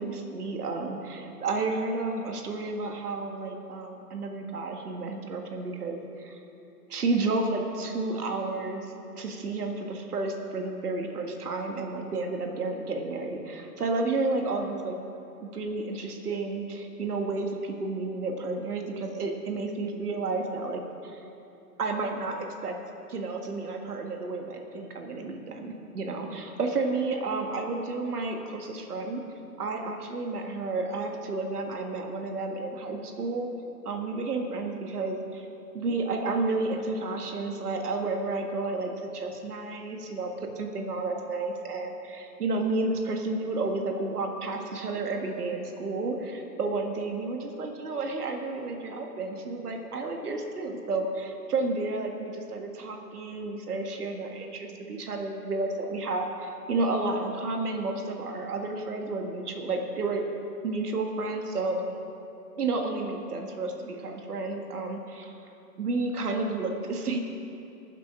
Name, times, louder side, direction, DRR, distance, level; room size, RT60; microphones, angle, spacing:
voice 1, 0.0-6.4 6.9-15.0 15.4-21.2 21.8-22.8 23.1-29.2 29.6-33.5 33.9-35.5 35.7-60.3 60.6-61.8 62.6-65.4 65.8-67.2, right 3 dB, 65° right, 3 dB, 1.8 m, -31 dB
20.0 x 7.7 x 4.9 m, 2.9 s
hypercardioid pair, 175°, 49 cm